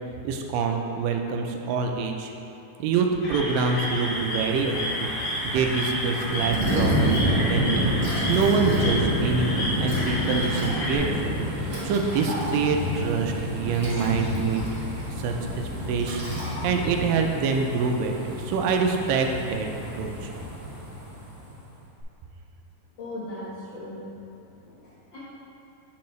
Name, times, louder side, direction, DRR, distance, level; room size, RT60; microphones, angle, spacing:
voice 1, 0.2-2.3 2.8-5.1 5.4-14.7 15.2-16.2 16.6-20.3, right 4 dB, 90° right, 3 dB, 2.3 m, -26 dB
sound 1, 3.2-11.0, left 1 dB, 60° left, 2.7 m, -31 dB
sound 2, 3.4-21.6 22.0-22.1, equal, 45° right, 1.2 m, -29 dB
Liquid, 6.4-7.3 7.6-7.7 7.9-9.2 9.8-12.9 13.5-15.1 15.4-15.6 16.0-17.0, equal, 65° right, 0.4 m, -38 dB
voice 2, 23.0-24.0 24.3-25.2, left 1 dB, 80° left, -9 dB, 1.0 m, -39 dB
7.2 x 7.1 x 3.1 m, 2.8 s
omnidirectional pair, 3.8 m